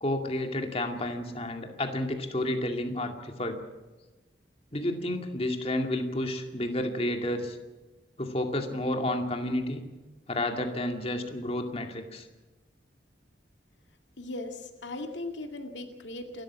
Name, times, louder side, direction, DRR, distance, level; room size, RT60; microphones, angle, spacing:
voice 1, 0.0-3.6 4.7-7.6 8.2-9.9 10.3-12.3, left 1 dB, 35° left, 4 dB, 2.3 m, -31 dB
voice 2, 14.2-16.4, left 2 dB, 85° left, 4 dB, 2.2 m, -38 dB
28.5 x 13.0 x 7.5 m, 1.2 s
head